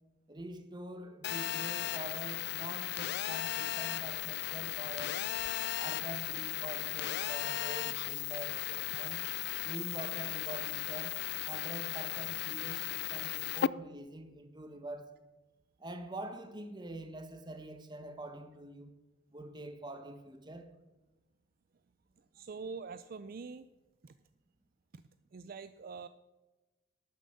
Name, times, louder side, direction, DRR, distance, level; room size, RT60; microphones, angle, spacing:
voice 1, 0.3-5.3 5.8-9.2 9.6-15.2 15.8-18.9 19.3-20.7, right 1 dB, 20° right, 1.2 m, -45 dB
Telephone, 1.2-13.7, left 13 dB, 55° left, 0.3 m, -36 dB
voice 2, 22.3-23.7 24.0-24.2 24.9-25.0 25.3-26.1, right 5 dB, 50° right, 0.4 m, -44 dB
12.5 x 9.1 x 6.6 m
head